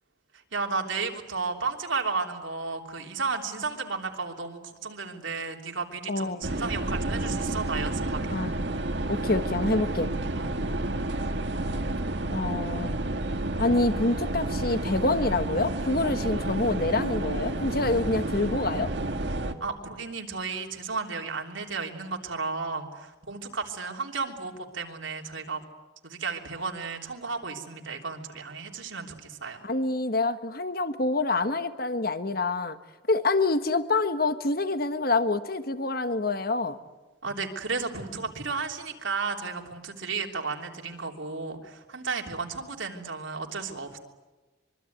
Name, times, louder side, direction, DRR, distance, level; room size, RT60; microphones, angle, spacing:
voice 1, 0.5-8.4 10.4-10.6 19.6-25.6 26.0-29.7 37.2-44.0, right 4 dB, 75° right, 2 dB, 3.4 m, -33 dB
voice 2, 6.1-6.4 8.3-8.5 9.1-10.1 12.3-13.0 13.6-18.9 29.6-32.8 33.1-36.8, left 2 dB, 50° left, 10 dB, 1.4 m, -26 dB
sound 1, 6.4-19.5, right 2 dB, 60° right, 1.8 m, -30 dB
25.0 x 24.0 x 9.4 m, 1.2 s
head